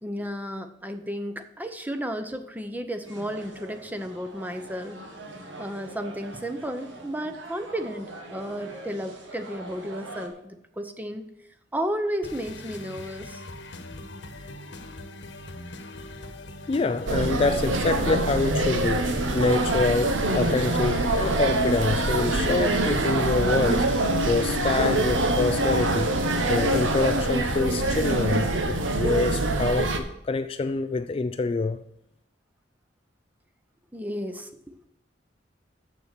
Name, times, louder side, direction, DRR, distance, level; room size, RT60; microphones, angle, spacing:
voice 1, 0.0-5.0 5.6-11.3 11.7-13.4 33.9-34.5, equal, 10° right, 0.7 m, -33 dB
sound 1, 3.0-10.3, right 2 dB, 70° right, 1.6 m, -43 dB
sound 2, 12.2-28.2, left 2 dB, 65° left, 1.1 m, -41 dB
voice 2, 16.7-26.2 26.5-31.8, left 3 dB, 30° left, 0.3 m, -26 dB
sound 3, 17.1-30.0, right 2 dB, 85° right, 1.0 m, -24 dB
7.3 x 6.8 x 6.7 m
head